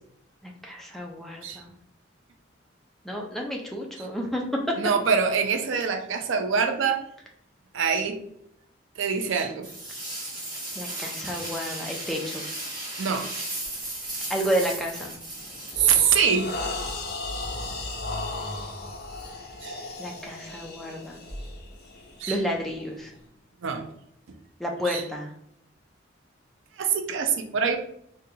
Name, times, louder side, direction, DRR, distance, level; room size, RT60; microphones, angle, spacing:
voice 1, 0.4-1.7 3.0-4.8 10.7-12.4 14.3-15.1 20.0-21.2 22.3-23.1 24.6-25.3, equal, ahead, -1 dB, 0.4 m, -30 dB
voice 2, 4.8-7.0 7.7-8.2 9.0-9.7 13.0-13.3 15.8-16.5 19.6-19.8 22.2-22.4 23.6-23.9 24.9-25.0 26.8-27.8, right 6 dB, 80° right, 6 dB, 0.4 m, -24 dB
sound 1, 9.6-16.4, right 1 dB, 20° right, 1.0 m, -35 dB
sound 2, 13.6-13.9 14.3-14.6 15.1-23.2, left 2 dB, 50° left, 0.6 m, -36 dB
3.9 x 2.3 x 2.7 m, 0.72 s
head